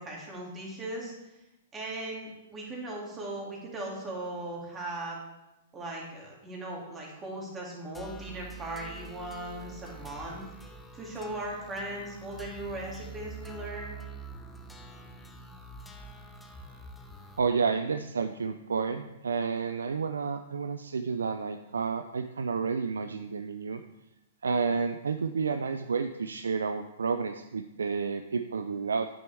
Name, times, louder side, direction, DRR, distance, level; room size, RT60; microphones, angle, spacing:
voice 1, 0.0-1.3 1.7-5.2 5.7-10.4 10.9-14.0, right 1 dB, 20° right, -3 dB, 2.2 m, -38 dB
sound 1, 7.9-17.4, right 3 dB, 5° left, 0.7 m, -46 dB
voice 2, 17.4-23.8 24.4-29.1, right 5 dB, 85° right, 8 dB, 0.3 m, -30 dB
9.0 x 6.3 x 3.3 m, 0.96 s
hypercardioid pair, 120°, 0 cm